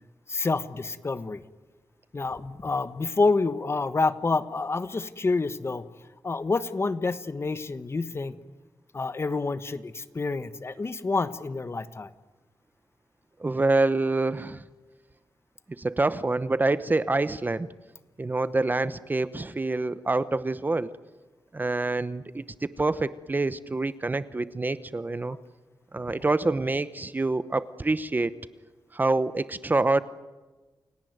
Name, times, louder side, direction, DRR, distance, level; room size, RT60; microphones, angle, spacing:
voice 1, 0.3-1.4 2.1-5.8 6.2-8.3 8.9-12.1, left 3 dB, 35° left, 13 dB, 1.2 m, -28 dB
voice 2, 13.4-14.6 15.7-17.7 18.2-20.9 21.5-25.4 25.9-28.3 28.9-30.0, right 2 dB, 25° right, 15 dB, 0.9 m, -26 dB
29.0 x 17.5 x 9.4 m, 1.2 s
wide cardioid pair, 145°, 8 cm